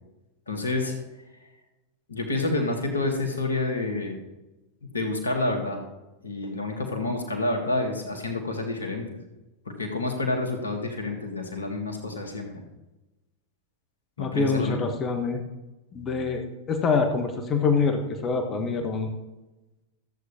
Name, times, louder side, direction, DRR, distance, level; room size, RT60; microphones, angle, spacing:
voice 1, 0.5-0.9 2.1-4.2 4.9-5.8 6.2-9.0 9.7-12.6 14.2-14.8, left 2 dB, 75° left, 3 dB, 1.7 m, -28 dB
voice 2, 14.2-15.4 15.9-19.1, left 4 dB, 25° left, 5 dB, 1.1 m, -25 dB
14.0 x 8.0 x 2.8 m, 1.0 s
figure-of-eight pair, 90°, 0 cm